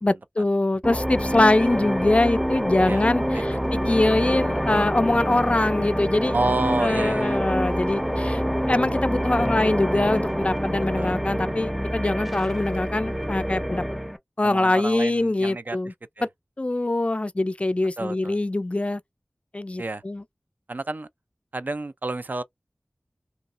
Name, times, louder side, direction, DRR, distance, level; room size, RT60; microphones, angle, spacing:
voice 1, 0.0-3.6 3.9-6.4 6.8-8.4 8.7-13.8 14.4-15.9 16.6-19.0 19.5-20.2, left 2 dB, 35° left, 0.3 m, -23 dB
sound 1, 0.8-14.2, equal, 5° right, 0.6 m, -26 dB
voice 2, 6.3-7.4 10.9-11.2 14.4-16.3 18.0-18.4 19.8-20.0 20.7-21.1 21.5-22.4, right 2 dB, 55° right, 0.4 m, -30 dB
3.0 x 2.8 x 2.5 m
wide cardioid pair, 55°, 4 cm